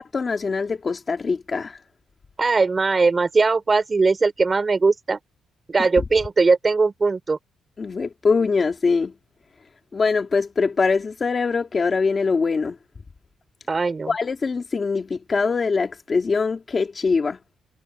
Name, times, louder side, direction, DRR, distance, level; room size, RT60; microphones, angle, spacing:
voice 1, 0.0-1.8 7.8-9.1 9.9-12.8 14.1-17.4, left 4 dB, 30° left, 2.6 m, -23 dB
voice 2, 2.4-5.2 5.7-7.4 13.7-14.1, right 4 dB, 25° right, 5.6 m, -20 dB
cardioid pair, 145°, 0 cm